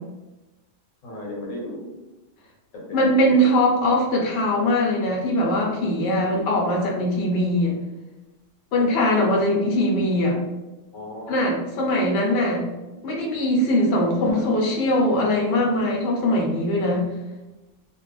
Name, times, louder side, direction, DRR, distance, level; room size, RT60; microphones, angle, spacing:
voice 1, 1.0-1.9 2.7-3.6 10.9-11.5 14.3-14.5, left 1 dB, 90° left, -2 dB, 1.3 m, -35 dB
voice 2, 2.9-7.8 8.7-10.4 11.3-12.6 13.0-17.1, left 1 dB, 60° left, -1 dB, 0.9 m, -21 dB
2.8 x 2.5 x 3.2 m, 1.1 s
omnidirectional pair, 1.3 m